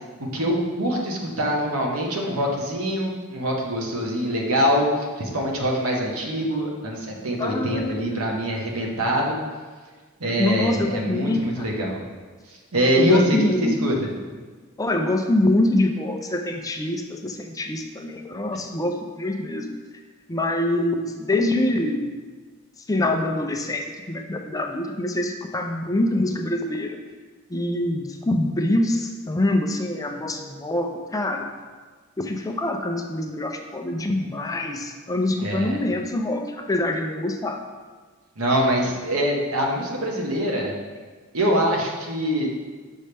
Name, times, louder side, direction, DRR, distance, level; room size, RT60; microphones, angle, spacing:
voice 1, 0.3-9.4 10.2-12.0 12.7-14.2 35.4-35.8 38.4-40.7 41.3-42.5, equal, 90° right, -1 dB, 1.2 m, -24 dB
voice 2, 7.4-8.3 10.4-11.7 13.0-13.7 14.8-19.7 20.3-22.1 22.9-27.0 27.5-31.5 32.2-37.6, left 1 dB, 15° left, 3 dB, 0.4 m, -25 dB
6.4 x 5.5 x 3.3 m, 1.4 s
head